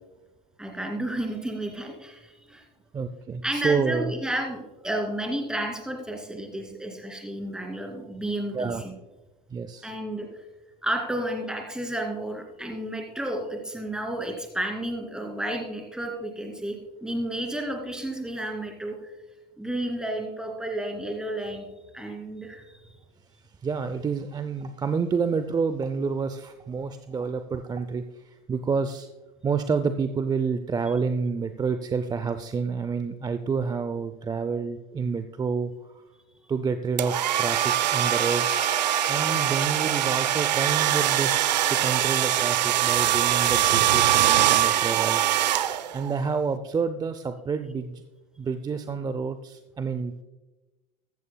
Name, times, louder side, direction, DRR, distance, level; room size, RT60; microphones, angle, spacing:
voice 1, 0.6-2.6 3.4-8.9 9.8-10.3 10.8-19.0 19.6-21.7 21.9-22.6, right 1 dB, 5° right, 2 dB, 2.6 m, -32 dB
voice 2, 2.9-4.1 8.5-8.8 9.5-9.9 23.6-29.1 29.4-35.7 36.5-38.5 39.1-41.3 41.7-45.2 45.9-48.0 48.4-50.2, right 5 dB, 20° right, 10 dB, 0.5 m, -28 dB
sound 1, 37.0-46.1, right 12 dB, 80° right, 0.7 m, -23 dB
14.0 x 14.0 x 2.3 m, 1.1 s
hypercardioid pair, 95°, 21 cm